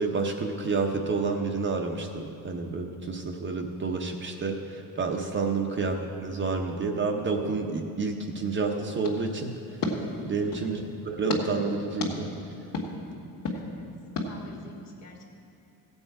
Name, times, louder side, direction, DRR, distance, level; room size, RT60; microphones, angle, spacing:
voice 1, 0.0-9.9 10.2-12.3, right 4 dB, 30° right, 2 dB, 0.8 m, -29 dB
sound 1, 9.0-10.7 11.3-11.4 12.0-12.1 12.7-12.9 13.4-13.6 14.2-14.3, left 3 dB, 65° left, 1.7 m, -32 dB
voice 2, 10.6-11.1 13.5-13.9 14.2-15.3, left 2 dB, 45° left, 0 dB, 1.9 m, -49 dB
15.5 x 8.0 x 4.8 m, 2.5 s
cardioid pair, 130°, 37 cm